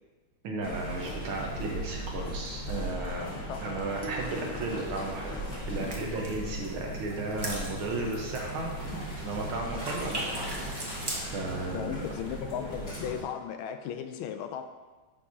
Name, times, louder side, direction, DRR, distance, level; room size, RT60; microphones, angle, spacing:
voice 1, 0.4-3.3 3.6-5.4 5.7-10.9 11.3-12.0, right 2 dB, 90° right, 0 dB, 2.0 m, -35 dB
sound 1, 0.6-13.2, equal, 45° left, 2.6 m, -38 dB
sound 2, 4.0-6.4, left 1 dB, 60° right, 1.1 m, -47 dB
sound 3, 5.8-9.5 9.8-11.2, right 1 dB, 30° right, 0.4 m, -40 dB
voice 2, 11.7-14.6, left 9 dB, 85° left, 8 dB, 1.4 m, -36 dB
11.0 x 4.6 x 2.8 m, 1.3 s
omnidirectional pair, 2.2 m